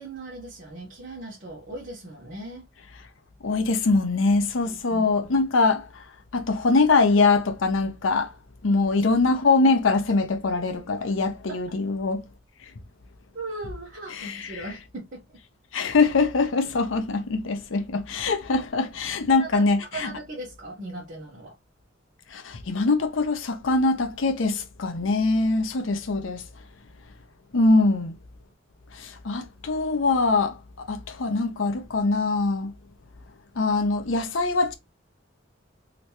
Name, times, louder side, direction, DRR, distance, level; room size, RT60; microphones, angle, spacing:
voice 1, 0.0-2.7 4.6-5.3 10.9-11.0 11.5-11.6 13.3-15.2 19.3-21.5 29.0-29.1, right 2 dB, 45° right, 1.2 m, -38 dB
voice 2, 3.4-5.8 6.3-8.3 8.6-12.2 14.2-14.4 15.7-20.1 22.3-26.4 27.5-28.2 29.0-30.6 30.9-32.7 33.6-34.7, left 3 dB, 80° left, 0.6 m, -23 dB
3.2 x 2.9 x 2.9 m
head